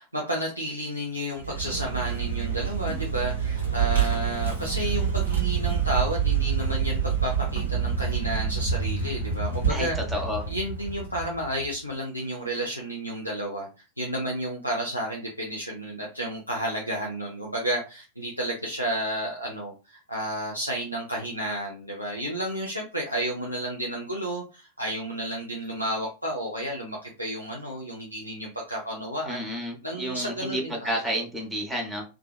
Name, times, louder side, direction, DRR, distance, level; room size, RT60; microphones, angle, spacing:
voice 1, 0.0-10.0 10.5-13.7 14.0-29.4 29.8-31.0, right 1 dB, 90° right, -3 dB, 0.5 m, -31 dB
Vehicle, 1.4-11.7, right 7 dB, 70° right, 0.9 m, -27 dB
voice 2, 9.7-10.5 29.3-32.0, equal, 10° right, 1 dB, 0.8 m, -31 dB
2.6 x 2.4 x 2.2 m, 0.30 s
figure-of-eight pair, 90°, 0 cm